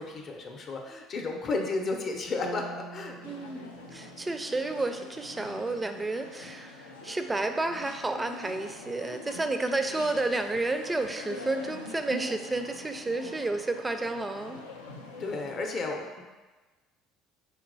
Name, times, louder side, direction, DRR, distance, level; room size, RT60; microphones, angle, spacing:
voice 1, 0.0-3.2 15.2-16.2, left 3 dB, 45° left, 2 dB, 0.6 m, -33 dB
sound 1, 2.4-6.5, right 3 dB, 80° right, 0.6 m, -47 dB
sound 2, 3.2-15.6, left 3 dB, 90° left, 0.3 m, -45 dB
voice 2, 3.2-14.6, right 2 dB, 20° right, 7 dB, 0.4 m, -31 dB
4.4 x 2.9 x 2.6 m, 1.2 s
hypercardioid pair, 60°, 0 cm